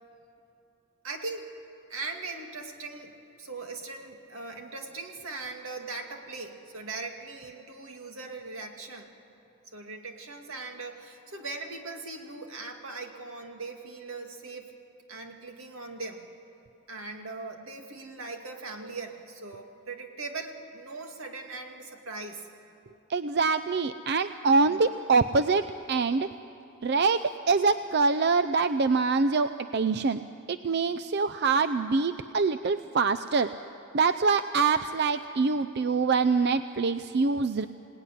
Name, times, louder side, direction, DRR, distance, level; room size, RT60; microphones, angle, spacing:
voice 1, 1.0-1.5 1.9-3.1 3.4-9.1 9.7-14.7 15.1-16.3 16.9-22.5 24.7-24.8, right 3 dB, 80° right, 3 dB, 2.3 m, -40 dB
voice 2, 23.1-25.6 25.9-26.3 26.8-30.2 30.5-33.5 33.9-37.7, right 4 dB, 50° right, 12 dB, 0.5 m, -25 dB
26.0 x 18.5 x 10.0 m, 2.8 s
head